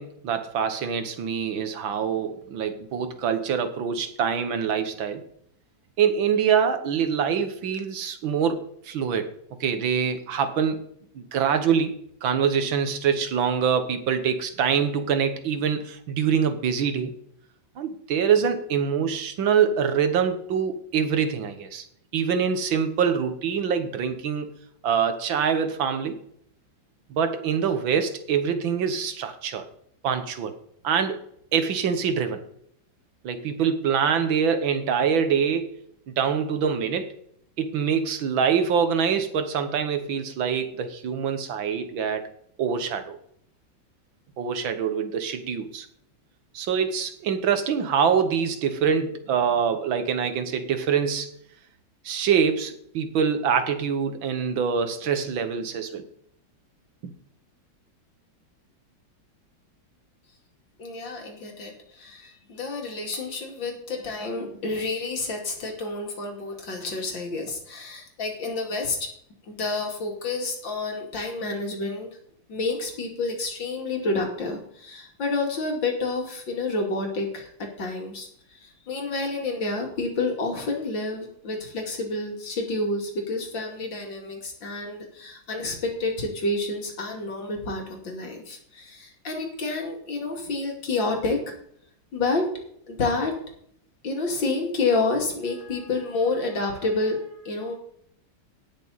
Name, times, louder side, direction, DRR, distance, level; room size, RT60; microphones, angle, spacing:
voice 1, 0.0-5.2 6.0-9.3 9.6-10.8 11.2-17.1 17.8-21.8 22.1-24.5 24.8-26.2 27.1-29.7 30.0-30.5 30.8-31.2 31.5-32.4 33.2-35.7 36.1-37.1 37.6-42.3 42.6-43.2 44.4-45.9 46.5-51.3 52.0-56.1 57.0-57.1, right 7 dB, 80° right, 9 dB, 2.0 m, -25 dB
voice 2, 60.8-69.1 69.5-72.1 72.5-91.5 92.1-92.5 92.9-93.4 94.0-97.7, left 3 dB, 70° left, 1 dB, 3.1 m, -29 dB
18.0 x 6.3 x 4.1 m, 0.67 s
omnidirectional pair, 2.1 m